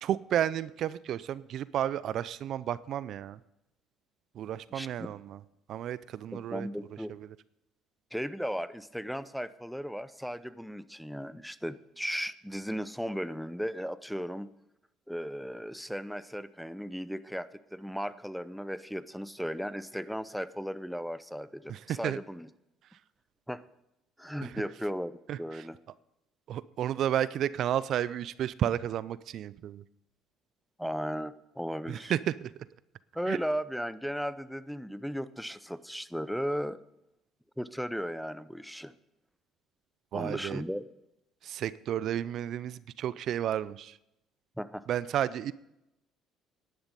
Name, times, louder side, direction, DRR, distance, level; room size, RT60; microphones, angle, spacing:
voice 1, 0.0-3.4 4.4-5.4 5.7-6.7 7.1-7.3 21.7-22.2 24.4-24.6 25.3-25.6 26.5-29.8 31.9-32.5 33.3-33.4 40.1-40.6 41.4-44.0 44.9-45.5, right 11 dB, 60° right, 18 dB, 0.4 m, -32 dB
voice 2, 4.7-5.1 6.5-7.1 8.1-14.5 15.1-22.5 23.5-23.6 24.2-25.8 30.8-32.1 33.1-36.8 37.6-38.9 40.1-40.8 44.6-44.8, equal, ahead, 16 dB, 0.7 m, -36 dB
11.0 x 10.5 x 5.4 m, 0.86 s
hypercardioid pair, 65°, 0 cm